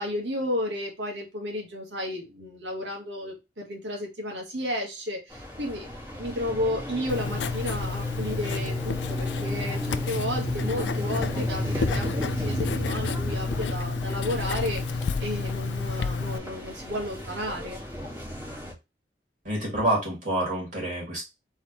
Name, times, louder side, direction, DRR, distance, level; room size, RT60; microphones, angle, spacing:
voice 1, 0.0-5.9 6.2-17.8, left 1 dB, 75° right, 0 dB, 1.8 m, -32 dB
sound 1, 5.3-18.7, equal, 25° right, 2.2 m, -35 dB
Writing, 7.1-16.4, left 4 dB, 80° left, 0.4 m, -30 dB
voice 2, 19.4-21.2, right 1 dB, 45° right, -3 dB, 2.7 m, -27 dB
4.3 x 3.6 x 3.2 m, 0.24 s
head